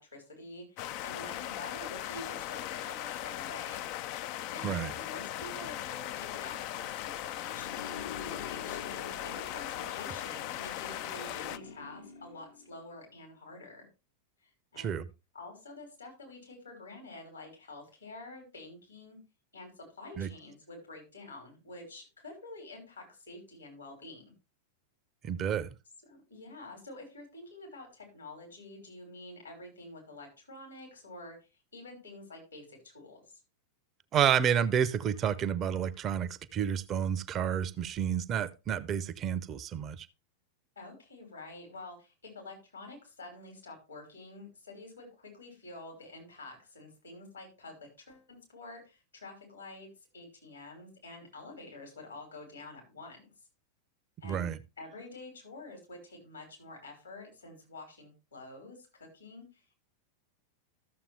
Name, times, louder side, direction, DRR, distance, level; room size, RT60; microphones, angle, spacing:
voice 1, 0.0-3.9 4.5-13.9 14.4-15.0 15.3-19.2 19.5-24.3 26.0-31.4 31.7-33.4 40.8-53.3 54.2-54.5 54.8-59.8, left 2 dB, 80° left, 5.4 m, -48 dB
sound 1, 0.8-11.6, left 13 dB, 45° left, 0.4 m, -38 dB
voice 2, 4.6-4.9 14.8-15.0 20.2-20.3 25.2-25.7 34.1-40.1 54.2-54.6, right 8 dB, 30° right, 0.6 m, -30 dB
sound 2, 7.4-13.1, left 7 dB, 60° left, 1.0 m, -46 dB
13.5 x 7.2 x 3.4 m
figure-of-eight pair, 90°, 0 cm